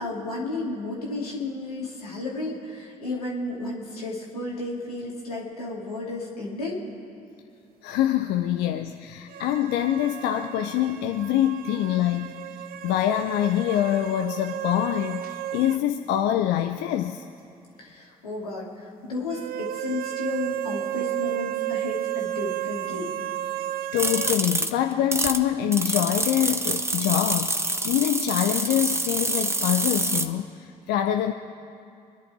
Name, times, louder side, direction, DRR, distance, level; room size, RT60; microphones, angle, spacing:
voice 1, 0.0-6.8 17.8-23.1, left 2 dB, 90° left, -4 dB, 2.4 m, -33 dB
voice 2, 7.8-17.2 23.9-31.3, left 11 dB, 65° left, 6 dB, 0.6 m, -25 dB
sound 1, 9.3-15.8 16.1-16.2 19.3-24.4, right 14 dB, 55° right, 0.5 m, -33 dB
sound 2, 24.0-25.4 25.7-30.3, right 2 dB, 15° right, 1.1 m, -26 dB
26.0 x 10.5 x 4.7 m, 2.5 s
figure-of-eight pair, 45°, 19 cm